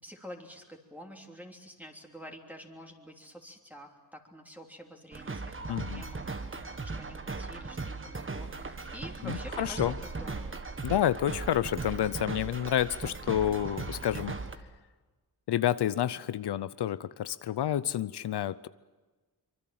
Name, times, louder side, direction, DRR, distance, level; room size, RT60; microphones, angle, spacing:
voice 1, 0.0-6.7 6.9-10.6, equal, 5° right, 1 dB, 3.2 m, -48 dB
sound 1, 5.1-14.5, right 3 dB, 30° right, 1.6 m, -38 dB
voice 2, 5.7-6.0 9.2-9.9 10.8-14.4 15.5-18.7, left 11 dB, 75° left, 16 dB, 0.7 m, -29 dB
24.5 x 23.5 x 7.7 m, 1.3 s
cardioid pair, 85°, 40 cm